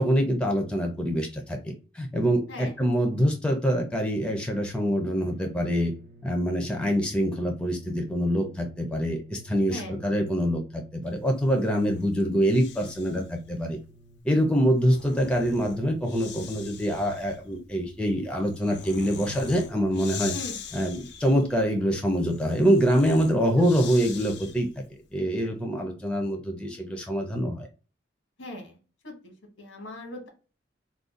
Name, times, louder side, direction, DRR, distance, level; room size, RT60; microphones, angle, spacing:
voice 1, 0.0-5.9 6.2-13.8 14.2-20.4 20.7-24.7 25.1-27.7, equal, 5° left, 2 dB, 0.5 m, -25 dB
sound 1, 5.2-14.2, right 2 dB, 55° right, 0.5 m, -53 dB
Breathing, 11.3-13.3 14.6-24.8, left 7 dB, 60° left, 0.4 m, -43 dB
voice 2, 28.4-28.8 29.0-30.3, left 1 dB, 90° left, 3 dB, 1.2 m, -40 dB
2.5 x 2.2 x 3.6 m, 0.35 s
head